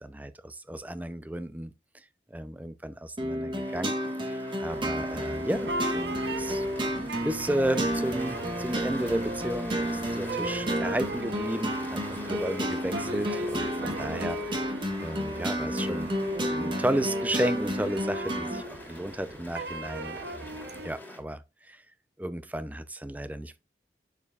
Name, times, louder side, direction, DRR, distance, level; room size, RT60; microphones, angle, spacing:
voice 1, 0.0-1.7 2.3-4.0 4.2-6.6 7.2-14.7 15.0-16.1 16.6-20.2 20.8-21.4 21.7-21.8 22.2-23.6, right 1 dB, 10° right, 0.5 m, -33 dB
sound 1, 3.2-18.6, equal, 25° right, 1.1 m, -32 dB
sound 2, 3.5-21.2, left 1 dB, 10° left, 2.4 m, -46 dB
sound 3, 4.7-20.9, right 2 dB, 75° right, 0.8 m, -38 dB
7.1 x 6.6 x 2.4 m
head